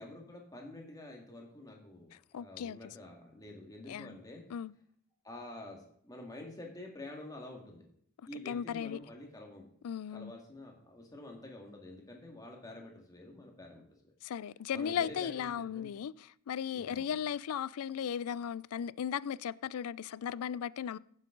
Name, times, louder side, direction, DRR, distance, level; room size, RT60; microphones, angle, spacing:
voice 1, 0.0-4.4 5.2-7.8 8.3-9.7 10.1-13.8 14.7-15.9 16.7-17.0, left 1 dB, 15° left, 2.1 m, -48 dB
voice 2, 2.3-2.8 3.9-4.2 4.5-4.7 8.5-9.0 9.8-10.3 14.2-21.0, left 8 dB, 80° left, 0.4 m, -36 dB
16.0 x 7.4 x 3.9 m
head